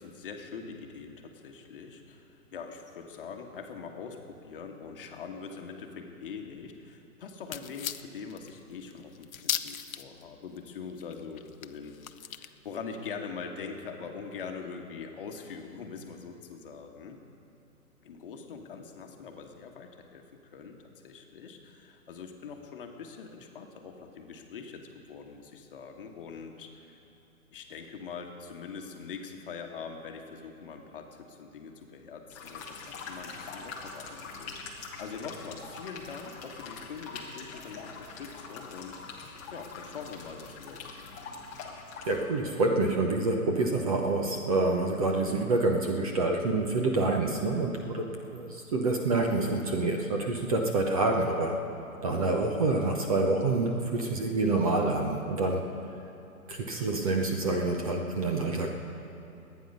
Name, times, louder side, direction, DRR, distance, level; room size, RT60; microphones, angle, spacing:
voice 1, 0.0-12.0 12.3-17.2 18.0-20.2 20.5-27.1 27.5-34.6 35.0-39.0 39.5-40.8, left 5 dB, 40° left, 3 dB, 1.3 m, -43 dB
sound 1, 7.5-10.2 10.6-10.7 10.9-12.8, left 9 dB, 70° left, 0.8 m, -37 dB
sound 2, 32.3-42.2, left 4 dB, 10° left, 0.7 m, -43 dB
voice 2, 42.1-51.6 52.0-55.7 56.5-58.7, right 2 dB, 25° right, 2 dB, 0.8 m, -27 dB
22.5 x 9.4 x 5.4 m, 2.7 s
hypercardioid pair, 160°, 44 cm